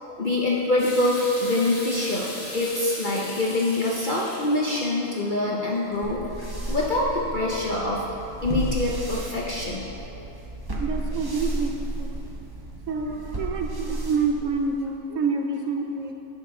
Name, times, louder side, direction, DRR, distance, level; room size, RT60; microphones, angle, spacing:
voice 1, 0.0-6.2 6.7-8.1 8.4-9.9, left 2 dB, 45° left, -4 dB, 0.6 m, -25 dB
sound 1, 0.8-7.6, left 1 dB, 85° left, 2.6 m, -39 dB
sound 2, 6.0-14.9, right 1 dB, 20° right, 0.6 m, -33 dB
voice 2, 10.8-12.3 12.9-16.1, right 4 dB, 65° right, 3 dB, 0.9 m, -28 dB
10.0 x 6.5 x 3.7 m, 3.0 s
omnidirectional pair, 1.6 m